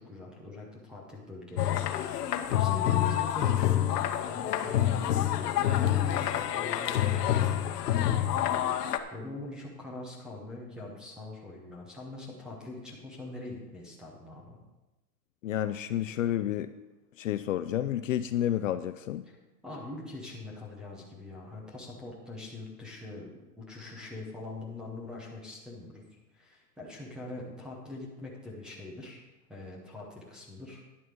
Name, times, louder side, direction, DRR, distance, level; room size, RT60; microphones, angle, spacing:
voice 1, 0.0-1.8 2.1-5.0 5.7-8.2 9.1-14.6 19.2-19.4 19.6-23.3 23.6-26.0 26.3-29.2 29.5-30.8, left 2 dB, ahead, -3 dB, 0.7 m, -43 dB
sound 1, 1.6-9.0, left 11 dB, 70° left, 1.0 m, -27 dB
voice 2, 15.4-16.7 17.2-19.2, left 11 dB, 55° left, 11 dB, 0.5 m, -30 dB
10.5 x 7.8 x 5.2 m, 1.0 s
supercardioid pair, 170°, 49 cm